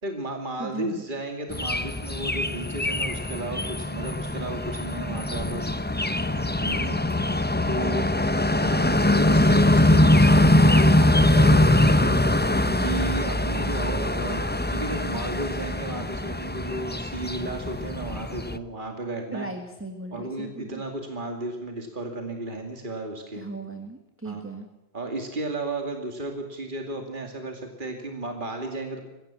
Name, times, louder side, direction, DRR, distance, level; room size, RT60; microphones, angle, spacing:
voice 1, 0.0-5.7 6.6-6.9 7.6-8.0 8.5-12.5 12.8-19.5 20.1-23.4 24.2-24.4 24.9-29.0, right 2 dB, 50° right, 3 dB, 2.6 m, -34 dB
voice 2, 0.6-1.0 6.9-7.0 7.8-8.3 12.6-12.9 19.3-20.8 23.3-24.7, right 2 dB, 10° right, 4 dB, 1.7 m, -37 dB
sound 1, 1.5-18.6, left 1 dB, 10° left, 0.7 m, -22 dB
23.0 x 17.0 x 7.1 m, 1.1 s
omnidirectional pair, 1.1 m